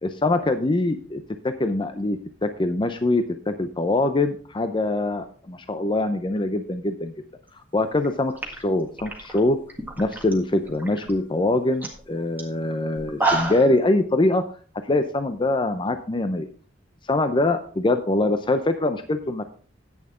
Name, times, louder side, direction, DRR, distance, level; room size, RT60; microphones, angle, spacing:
voice 1, 0.0-7.1 7.7-9.6 10.0-14.4 14.8-16.5 17.1-19.5, left 2 dB, 25° left, 9 dB, 0.5 m, -23 dB
sound 1, 7.9-8.1 8.4-10.3 10.6-11.1 11.5-11.6 11.8-12.0 12.4-12.5 13.0-13.7, right 3 dB, 10° right, 1.7 m, -28 dB
10.5 x 8.7 x 3.7 m, 0.42 s
head